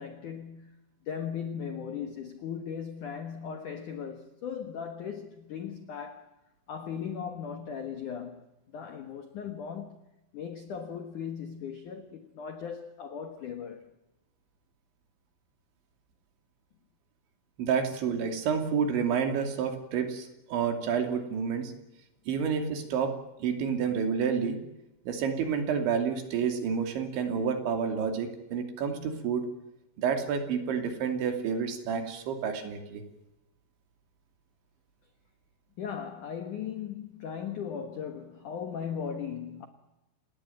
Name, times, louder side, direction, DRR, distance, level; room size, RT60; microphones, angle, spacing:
voice 1, 0.0-6.4 6.7-8.5 8.7-10.1 10.3-13.9 35.8-39.7, left 7 dB, 70° left, 2.0 m, -38 dB
voice 2, 17.6-21.7 22.3-24.6 25.1-29.5 30.0-33.0, right 6 dB, 65° right, 4.9 m, -29 dB
29.5 x 18.0 x 9.0 m
omnidirectional pair, 5.8 m